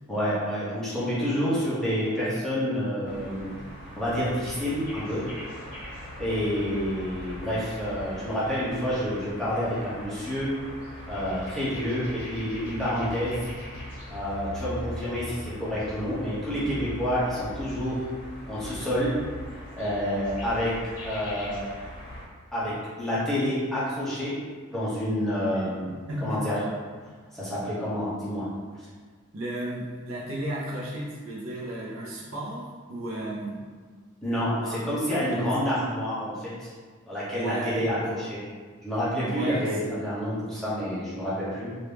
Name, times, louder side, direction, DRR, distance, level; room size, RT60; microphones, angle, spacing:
voice 1, 0.1-3.5 4.0-5.2 6.2-10.5 11.1-13.4 14.1-18.0 18.5-19.1 19.8-20.7 21.0-21.7 22.5-24.3 24.7-26.5 27.3-28.5 34.2-36.7 37.1-38.4 38.8-41.7, equal, ahead, -11 dB, 1.0 m, -28 dB
sound 1, 3.0-22.2, equal, 40° left, 1.1 m, -40 dB
voice 2, 26.1-26.6 29.3-33.6 34.6-35.5 37.4-38.0 39.2-40.0, right 1 dB, 70° right, -5 dB, 0.7 m, -34 dB
3.0 x 2.6 x 3.4 m, 1.5 s
head